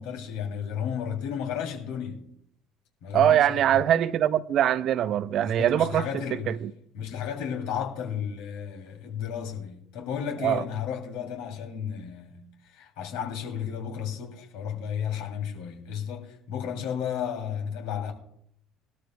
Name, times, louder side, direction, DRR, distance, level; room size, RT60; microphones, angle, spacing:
voice 1, 0.0-2.2 3.0-3.8 5.4-6.5 6.9-18.1, left 8 dB, 65° left, 3.0 m, -33 dB
voice 2, 3.1-6.1 6.5-6.7 10.4-10.6, right 10 dB, 50° right, 0.6 m, -22 dB
21.0 x 13.0 x 2.3 m
figure-of-eight pair, 60°, 0 cm